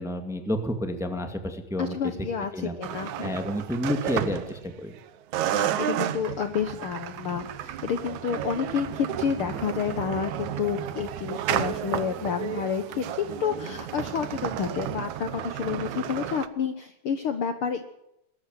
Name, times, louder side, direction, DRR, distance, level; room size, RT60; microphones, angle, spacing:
voice 1, 0.0-2.1 2.5-2.7 3.2-4.9, left 1 dB, ahead, 6 dB, 1.7 m, -30 dB
voice 2, 1.8-3.4 5.5-18.0, left 7 dB, 60° left, 8 dB, 1.7 m, -30 dB
sound 1, 2.8-5.0 5.3-16.5, right 11 dB, 75° right, 2.3 m, -32 dB
21.0 x 13.5 x 9.4 m, 0.82 s
omnidirectional pair, 3.5 m